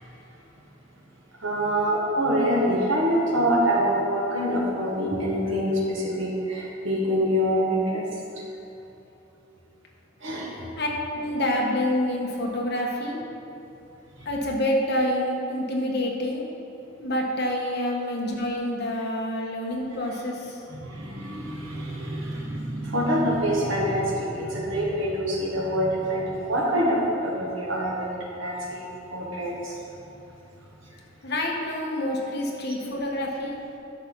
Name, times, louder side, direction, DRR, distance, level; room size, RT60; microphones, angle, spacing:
voice 1, 1.4-8.0 10.2-10.5 17.7-17.8 20.7-29.8, equal, 80° right, -4 dB, 1.8 m, -25 dB
voice 2, 11.1-13.2 14.2-16.5 17.0-20.6 31.2-33.6, left 1 dB, 55° left, -1 dB, 1.4 m, -27 dB
11.0 x 6.9 x 4.1 m, 3.0 s
head